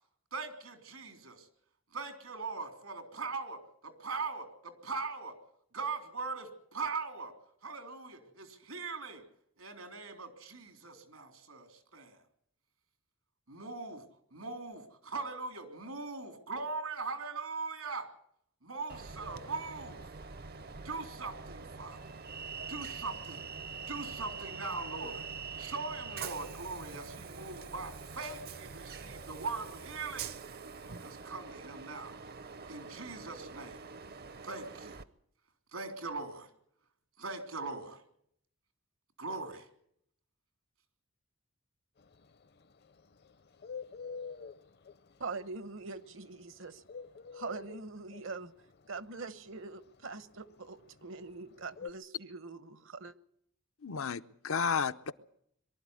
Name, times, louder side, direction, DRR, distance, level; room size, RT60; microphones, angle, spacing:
voice 1, 0.3-1.5 1.9-5.4 5.7-7.3 7.6-9.2 9.6-12.2 13.5-14.0 14.3-18.1 18.6-20.0 20.8-22.0 22.7-23.5 23.9-25.2 25.6-30.3 31.0-32.2 32.7-33.8 34.4-35.0 35.7-36.5 37.2-38.0 39.2-39.7, right 4 dB, 85° right, 5 dB, 3.7 m, -40 dB
Train, 18.9-35.0, right 5 dB, 50° right, 0.7 m, -44 dB
Bird, 42.0-51.9, left 5 dB, 50° left, 0.7 m, -46 dB
voice 2, 45.2-46.8 47.3-48.5 48.9-53.1, right 4 dB, 65° right, 14 dB, 1.0 m, -43 dB
voice 3, 53.8-55.1, left 6 dB, 80° left, 11 dB, 0.8 m, -32 dB
23.0 x 12.5 x 9.7 m, 0.71 s
head